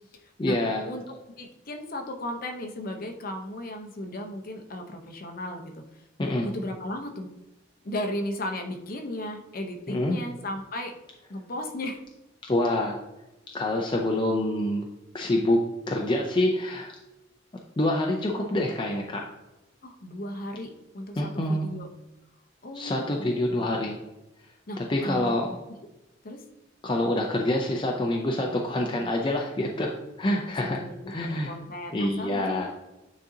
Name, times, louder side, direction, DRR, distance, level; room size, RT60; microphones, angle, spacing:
voice 1, 0.4-0.8 6.2-6.5 9.9-10.2 12.5-13.0 13.5-14.9 15.1-15.6 15.9-16.9 17.8-19.2 21.2-21.7 22.7-24.0 24.8-25.6 26.8-31.5 31.9-32.7, left 1 dB, 25° left, 0 dB, 0.5 m, -26 dB
voice 2, 1.4-5.8 6.2-7.3 7.8-10.9 11.3-12.0 19.8-21.9 22.6-23.3 23.6-23.7 24.7-25.3 26.2-26.4 30.8-32.6, left 1 dB, 45° left, 4 dB, 0.8 m, -35 dB
9.3 x 3.8 x 2.8 m, 0.99 s
head